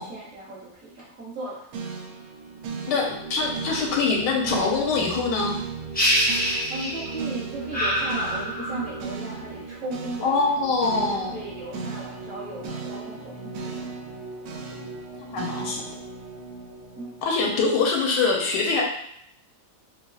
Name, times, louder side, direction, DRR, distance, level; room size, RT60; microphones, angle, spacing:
voice 1, 0.0-1.7 6.7-13.9 17.0-17.1, right 1 dB, 50° right, -10 dB, 1.9 m, -37 dB
sound 1, 1.7-18.0, right 4 dB, 70° right, 1.0 m, -36 dB
voice 2, 2.9-5.5 10.2-11.4 15.3-15.8 17.2-18.8, left 4 dB, 85° left, 0 dB, 1.3 m, -24 dB
sound 2, 5.9-7.3 7.7-9.0, equal, 10° left, 0.5 m, -25 dB
4.8 x 2.3 x 2.4 m, 0.71 s
omnidirectional pair, 1.8 m